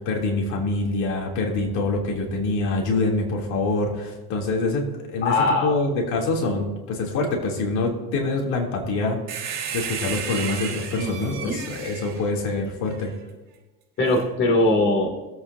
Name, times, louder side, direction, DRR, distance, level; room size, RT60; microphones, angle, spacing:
voice 1, 0.0-9.2 9.7-13.1, left 2 dB, 65° left, 0 dB, 3.0 m, -25 dB
voice 2, 5.2-5.8 11.0-11.6 14.0-15.1, left 2 dB, 40° left, -1 dB, 2.5 m, -21 dB
sound 1, 9.3-13.1 14.1-14.2, right 7 dB, 40° right, 3.6 m, -33 dB
24.0 x 8.3 x 2.7 m, 1.2 s
cardioid pair, 135°, 30 cm